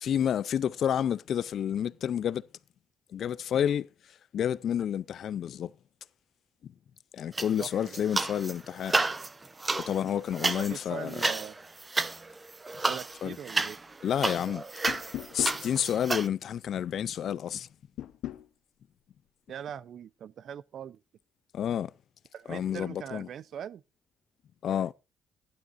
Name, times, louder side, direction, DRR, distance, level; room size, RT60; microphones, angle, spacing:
voice 1, 0.0-2.5 3.1-3.9 4.3-5.7 6.6-6.7 7.1-9.0 9.8-11.2 13.2-13.4 14.0-14.6 15.3-17.7 21.5-21.9 22.5-23.3 24.6-24.9, left 9 dB, 65° left, 0.5 m, -29 dB
sound 1, 7.3-8.5 8.8-16.3, right 3 dB, 25° right, 0.8 m, -31 dB
voice 2, 7.6-8.0 10.5-11.5 12.8-13.8 19.5-21.0 22.3-23.8, right 9 dB, 65° right, 0.5 m, -41 dB
sound 2, 14.9-15.6 18.0-18.5, left 13 dB, 85° left, 0.8 m, -36 dB
15.5 x 11.5 x 2.5 m
cardioid pair, 90°, 0 cm